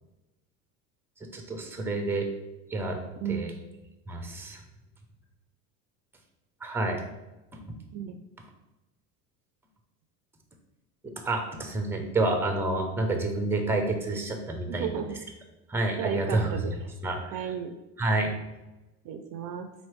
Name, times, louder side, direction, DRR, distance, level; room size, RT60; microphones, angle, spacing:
voice 1, 1.3-2.3 2.7-3.0 3.3-3.5 4.1-4.6 6.6-7.0 7.7-7.8 11.0-14.9 15.7-16.5 17.0-17.4 18.0-18.4, right 2 dB, 5° right, 4 dB, 0.6 m, -29 dB
voice 2, 14.7-15.2 16.0-16.9 17.3-17.7 19.0-19.7, right 7 dB, 50° right, 6 dB, 0.5 m, -33 dB
4.1 x 3.1 x 3.1 m, 1.0 s
supercardioid pair, 90°, 43 cm